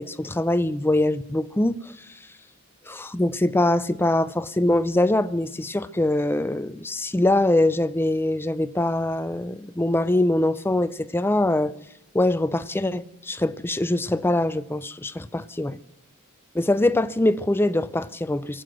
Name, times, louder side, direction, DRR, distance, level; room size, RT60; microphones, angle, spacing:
voice 1, 0.0-1.8 2.9-11.7 12.1-15.8 16.5-18.6, left 1 dB, 10° left, 0.5 m, -23 dB
23.5 x 7.9 x 6.4 m
head